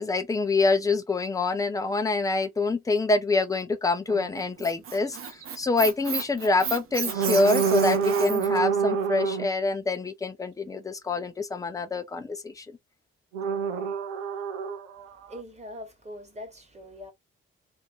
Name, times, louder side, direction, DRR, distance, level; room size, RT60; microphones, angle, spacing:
voice 1, 0.0-12.8, left 3 dB, 10° left, 0.6 m, -26 dB
sound 1, 4.1-4.2 5.2-5.4 7.0-9.5 13.3-15.4, right 6 dB, 70° right, 0.6 m, -27 dB
Squeak, 4.4-8.6, right 6 dB, 35° right, 0.8 m, -33 dB
voice 2, 15.0-17.1, left 1 dB, 20° right, 1.4 m, -42 dB
2.7 x 2.5 x 3.4 m
figure-of-eight pair, 40°, 37 cm